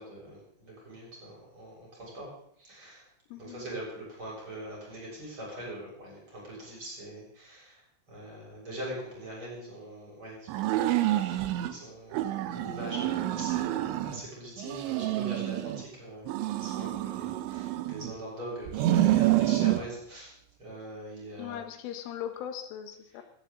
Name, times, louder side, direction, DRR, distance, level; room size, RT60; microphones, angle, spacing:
voice 1, 0.0-2.3 2.6-3.1 3.4-7.8 8.1-20.3 20.6-21.6, right 1 dB, 25° right, -4 dB, 7.1 m, -42 dB
voice 2, 3.3-3.7 21.4-23.2, left 10 dB, 80° left, 7 dB, 3.7 m, -39 dB
sound 1, 10.5-11.7 12.1-14.2 14.6-15.8 16.3-18.2 18.7-19.9, right 14 dB, 75° right, 3.0 m, -28 dB
17.0 x 14.0 x 3.9 m, 0.70 s
omnidirectional pair, 5.8 m